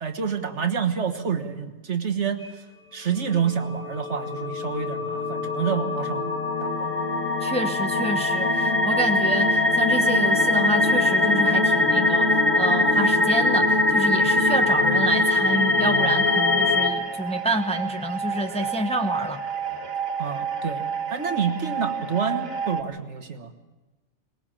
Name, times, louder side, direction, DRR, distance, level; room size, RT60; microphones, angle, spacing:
voice 1, 0.0-2.6 2.9-6.3 6.6-6.9 20.2-20.8 21.1-23.5, right 7 dB, 60° right, 6 dB, 1.6 m, -28 dB
sound 1, 3.6-16.9, left 2 dB, 70° left, 2.2 m, -22 dB
voice 2, 7.4-19.4, right 1 dB, 5° left, 5 dB, 1.0 m, -28 dB
sound 2, 16.0-22.8, right 6 dB, 80° right, 2.2 m, -31 dB
23.0 x 20.0 x 7.5 m, 1.1 s
omnidirectional pair, 1.4 m